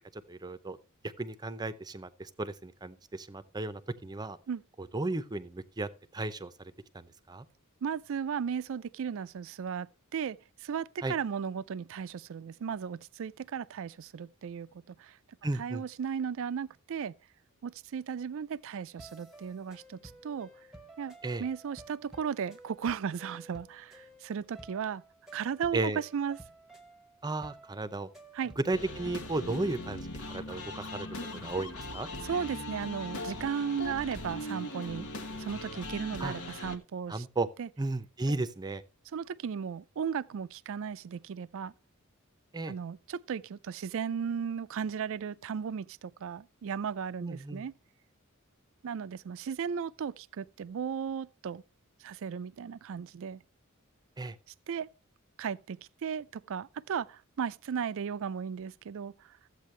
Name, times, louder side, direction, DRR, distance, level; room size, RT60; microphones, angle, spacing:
voice 1, 0.1-0.8 1.0-4.4 4.8-7.5 11.0-11.1 15.4-15.8 21.2-21.4 25.7-26.0 27.2-28.1 28.6-31.1 31.3-32.1 36.2-36.3 37.1-37.5 37.8-38.8 42.5-42.7 47.2-47.7 54.2-54.4, right 2 dB, 20° right, 0.6 m, -34 dB
voice 2, 7.8-15.2 15.6-17.1 17.6-20.5 21.0-21.1 21.4-25.0 25.3-26.4 28.3-28.5 32.2-35.1 35.4-37.2 37.6-37.7 39.1-41.7 42.7-47.7 48.8-51.6 52.0-53.4 54.7-54.9 55.4-59.4, right 7 dB, 65° right, 0.4 m, -35 dB
sound 1, 19.0-29.7, right 2 dB, ahead, 1.0 m, -53 dB
sound 2, 28.7-36.8, left 1 dB, 90° left, 1.3 m, -40 dB
13.5 x 8.2 x 3.2 m
head